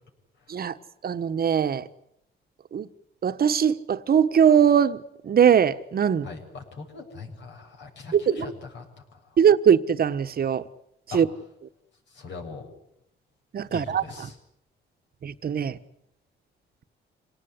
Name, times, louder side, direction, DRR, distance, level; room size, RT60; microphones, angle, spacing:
voice 1, 1.0-1.9 2.7-2.9 3.2-5.0 5.2-6.3 8.1-8.2 9.4-10.6 11.1-11.3 13.5-14.3 15.2-15.8, right 8 dB, 50° right, 1.3 m, -21 dB
voice 2, 6.2-8.8 11.1-11.2 12.1-12.7 13.7-14.3, left 4 dB, 65° left, 7.7 m, -40 dB
26.5 x 18.5 x 9.9 m
cardioid pair, 90°, 20 cm